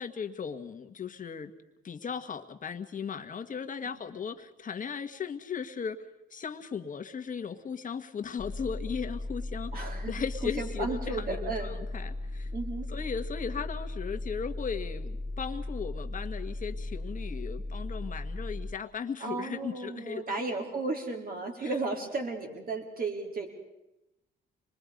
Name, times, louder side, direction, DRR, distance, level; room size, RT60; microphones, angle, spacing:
voice 1, 0.0-1.5 1.8-6.0 6.3-12.5 12.9-20.4 21.6-21.7, left 6 dB, 40° left, 7 dB, 1.6 m, -37 dB
sound 1, 8.4-18.7, left 2 dB, 20° left, 0.8 m, -37 dB
voice 2, 9.7-10.1 10.4-11.7 12.5-12.9 19.2-23.5, right 3 dB, 50° right, 2 dB, 4.5 m, -34 dB
25.5 x 21.0 x 5.3 m, 0.93 s
cardioid pair, 90°, 20 cm